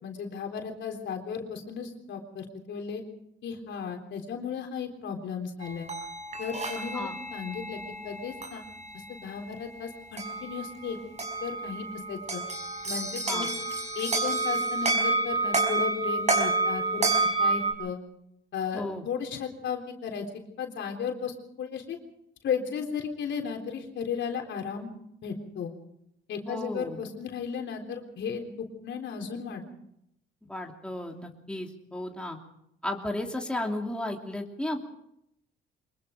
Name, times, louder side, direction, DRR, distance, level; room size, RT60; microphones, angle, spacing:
voice 1, 0.0-3.0 3.4-5.9 6.4-7.8 8.0-8.7 9.1-11.0 11.4-12.4 12.8-13.5 14.0-17.1 17.4-18.0 18.5-20.3 20.6-22.0 22.4-24.9 25.2-25.7 26.3-29.6, left 6 dB, 70° left, 2 dB, 3.8 m, -35 dB
sound 1, 5.6-17.7, right 3 dB, 35° right, 5.5 m, -30 dB
voice 2, 18.7-19.0 26.5-27.0 30.5-32.4 32.8-34.9, left 1 dB, 5° left, 1 dB, 3.0 m, -34 dB
24.0 x 21.5 x 5.1 m, 0.77 s
cardioid pair, 90°, 20 cm